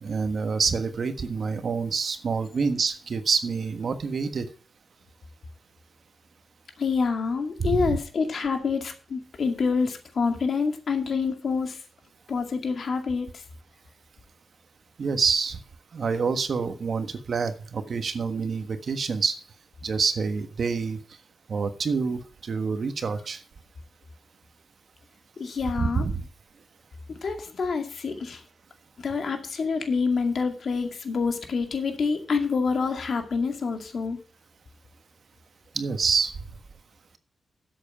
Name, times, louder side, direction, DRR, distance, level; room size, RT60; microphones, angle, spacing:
voice 1, 0.0-4.5 7.6-8.0 15.0-15.6 15.9-19.4 19.8-21.0 21.5-23.4 25.8-26.2 35.7-36.3, right 5 dB, 55° right, 9 dB, 1.4 m, -27 dB
voice 2, 6.8-11.8 12.3-13.4 25.4-26.1 27.2-28.4 29.0-34.2, left 5 dB, 60° left, 5 dB, 2.3 m, -27 dB
12.0 x 7.9 x 4.9 m, 0.41 s
wide cardioid pair, 120°, 0 cm